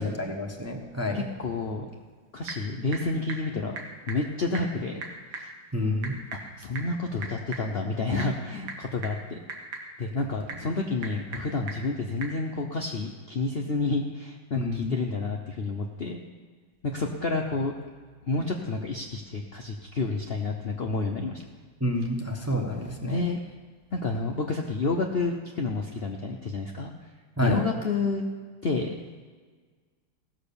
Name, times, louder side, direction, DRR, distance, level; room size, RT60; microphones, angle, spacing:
voice 1, 0.0-1.3 5.7-6.2 14.5-15.0 21.8-23.3 27.4-27.6, left 1 dB, 10° right, 1 dB, 0.7 m, -29 dB
voice 2, 1.1-1.9 2.3-3.8 4.1-5.1 5.3-5.5 6.3-9.4 10.0-16.2 16.9-17.7 18.3-21.4 23.0-23.4 23.9-26.9 27.4-28.2 28.6-29.0, left 3 dB, 75° left, 2 dB, 0.5 m, -29 dB
Typing / Telephone, 1.9-12.4, right 3 dB, 85° right, 2.2 m, -42 dB
16.5 x 6.3 x 6.9 m, 1.5 s
omnidirectional pair, 2.1 m